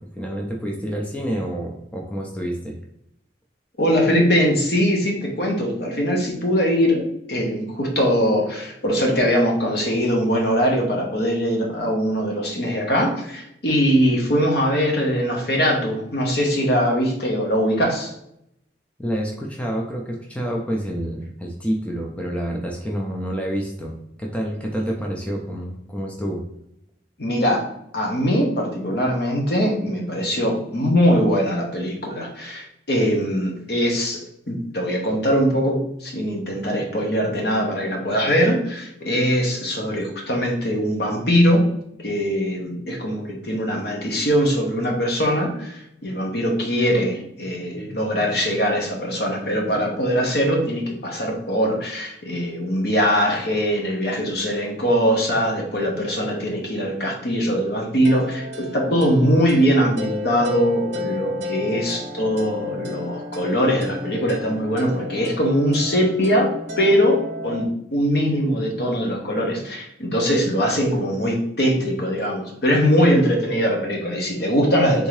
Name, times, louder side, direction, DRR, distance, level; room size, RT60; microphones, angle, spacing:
voice 1, 0.2-2.8 19.0-26.4, equal, 5° left, -1 dB, 0.4 m, -28 dB
voice 2, 3.8-18.1 27.2-27.7 27.9-41.6 42.0-75.1, equal, 60° left, 0 dB, 0.9 m, -21 dB
sound 1, 58.0-67.7, left 2 dB, 75° right, 0.6 m, -33 dB
3.6 x 2.7 x 3.1 m, 0.77 s
head